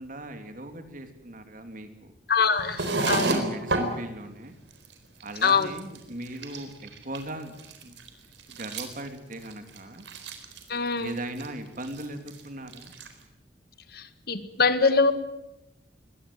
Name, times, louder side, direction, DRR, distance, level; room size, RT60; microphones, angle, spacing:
voice 1, 0.0-2.1 2.9-4.5 5.2-7.5 7.8-8.0 8.5-10.0 11.0-12.9, right 1 dB, 50° right, 7 dB, 3.1 m, -38 dB
voice 2, 2.3-3.3 5.4-5.7 10.7-11.1 13.9-15.1, left 5 dB, 60° left, 11 dB, 1.8 m, -23 dB
sound 1, 2.6-3.9 4.4-4.5 4.7-4.9 5.2-6.0 6.2-7.3 7.6-10.7 11.0-11.5 11.8-12.4 12.7-13.1, right 2 dB, 80° right, 4.1 m, -31 dB
23.0 x 18.5 x 9.3 m, 0.88 s
head